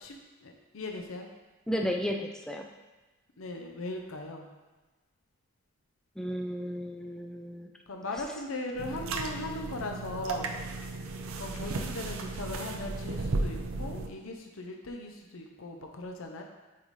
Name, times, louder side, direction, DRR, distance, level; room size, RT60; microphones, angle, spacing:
voice 1, 0.0-1.3 3.4-4.5 7.9-10.6 11.4-16.4, left 2 dB, 65° left, 2 dB, 0.6 m, -39 dB
voice 2, 1.7-2.6 6.2-7.7, equal, 5° left, 2 dB, 0.3 m, -33 dB
sound 1, 8.8-14.1, right 3 dB, 70° right, 0.5 m, -35 dB
8.4 x 4.1 x 3.2 m, 1.2 s
head